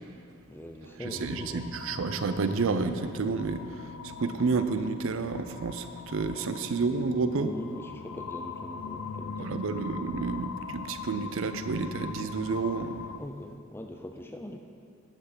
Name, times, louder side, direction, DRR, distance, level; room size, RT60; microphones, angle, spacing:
voice 1, 0.5-1.7 6.4-6.5 7.3-9.5 13.2-14.6, left 1 dB, 10° left, 4 dB, 0.4 m, -42 dB
sound 1, 1.0-13.2, left 6 dB, 85° left, 0.4 m, -41 dB
voice 2, 1.0-7.5 9.4-13.1, right 4 dB, 60° right, 10 dB, 0.4 m, -30 dB
9.9 x 5.7 x 6.0 m, 2.4 s
head